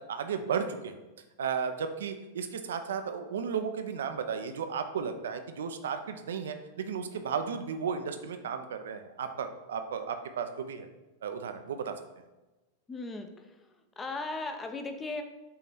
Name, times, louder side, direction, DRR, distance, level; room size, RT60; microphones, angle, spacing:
voice 1, 0.1-0.9 1.4-10.9 11.2-11.9, right 6 dB, 65° right, 8 dB, 0.7 m, -34 dB
voice 2, 12.9-13.7 14.0-15.2, left 3 dB, 15° left, 6 dB, 0.8 m, -37 dB
5.7 x 4.1 x 6.1 m, 1.1 s
figure-of-eight pair, 90°, 0 cm